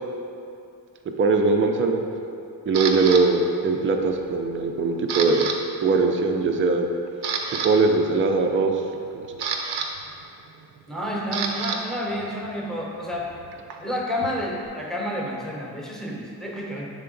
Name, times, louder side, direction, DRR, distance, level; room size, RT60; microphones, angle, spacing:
voice 1, 1.2-2.0 2.7-5.5 5.8-6.9 7.5-8.8 9.1-9.6, right 3 dB, 30° right, 4 dB, 0.4 m, -21 dB
Camera, 2.7-3.2 3.8-4.2 4.5-5.6 5.8-6.0 6.6-6.7 7.1-7.7 8.9-11.8 12.1-14.7, right 6 dB, 85° right, 0.6 m, -30 dB
voice 2, 10.9-13.3 13.8-16.9, equal, ahead, -3 dB, 0.7 m, -30 dB
6.8 x 3.6 x 3.8 m, 2.6 s
wide cardioid pair, 130°, 40 cm